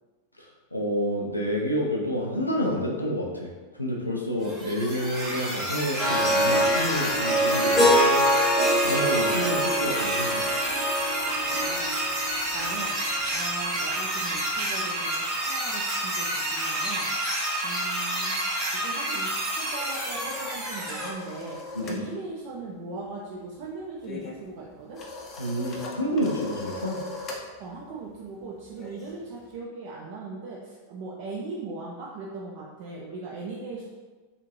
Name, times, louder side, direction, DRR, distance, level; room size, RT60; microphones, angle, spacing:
voice 1, 0.7-3.5 3.8-10.4 21.7-22.0 25.4-27.0, equal, 85° left, -2 dB, 0.4 m, -29 dB
sound 1, 4.4-21.1, right 1 dB, 20° right, 0.9 m, -29 dB
Harp, 6.0-13.2, equal, 10° left, 0.9 m, -24 dB
voice 2, 11.5-13.0 13.3-17.1 17.6-18.3 18.8-25.0 27.6-33.9, right 3 dB, 45° right, -3 dB, 0.4 m, -39 dB
sound 2, 19.4-22.1 22.3-22.6 22.9-29.6, left 3 dB, 30° left, 0.5 m, -40 dB
2.6 x 2.4 x 3.1 m, 1.3 s
figure-of-eight pair, 90°, 0 cm